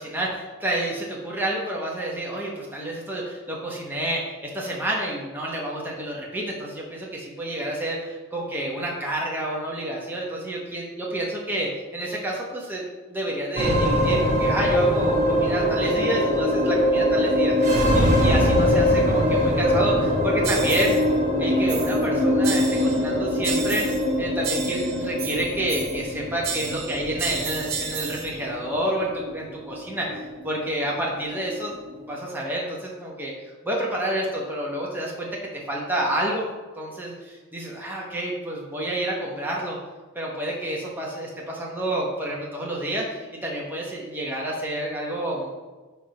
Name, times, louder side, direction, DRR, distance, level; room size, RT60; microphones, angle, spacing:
voice 1, 0.0-20.9 21.4-23.8 24.2-31.8 32.1-33.3 33.6-35.3 35.7-36.5 36.8-39.8 40.1-45.5, right 1 dB, 10° right, -3 dB, 0.9 m, -29 dB
sound 1, 13.6-32.1, equal, 35° right, 1.2 m, -23 dB
sound 2, 20.4-21.1 21.7-22.1 22.4-23.1 23.4-24.1 24.4-26.1 26.4-28.3, right 6 dB, 50° right, 0.7 m, -32 dB
4.5 x 4.4 x 5.2 m, 1.3 s
head